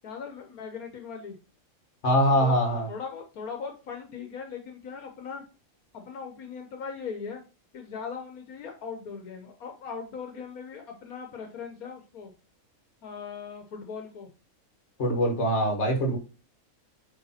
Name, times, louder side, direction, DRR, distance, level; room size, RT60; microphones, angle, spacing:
voice 1, 0.0-1.3 2.4-5.4 5.9-7.4 7.7-12.3 13.0-14.3, left 6 dB, 80° left, 4 dB, 1.5 m, -39 dB
voice 2, 2.0-2.9 15.0-16.2, equal, 55° left, 2 dB, 1.9 m, -23 dB
8.3 x 3.3 x 4.2 m, 0.32 s
omnidirectional pair, 1.5 m